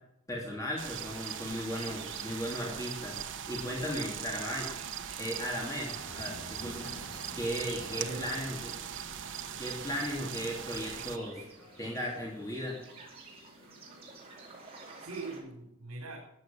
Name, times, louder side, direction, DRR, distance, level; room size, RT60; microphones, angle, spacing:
voice 1, 0.3-3.1 3.5-4.7 5.2-6.9 7.3-8.8 9.6-11.4 11.8-12.8, equal, 15° left, -3 dB, 3.0 m, -36 dB
sound 1, 0.6-15.4, right 3 dB, 25° right, 4.6 m, -54 dB
sound 2, 0.8-11.2, right 8 dB, 55° right, 1.0 m, -40 dB
sound 3, 6.0-15.2, equal, 60° left, 3.4 m, -53 dB
voice 2, 7.8-8.3 14.7-16.2, right 3 dB, 80° right, -1 dB, 3.9 m, -42 dB
14.0 x 10.5 x 7.6 m, 0.85 s
head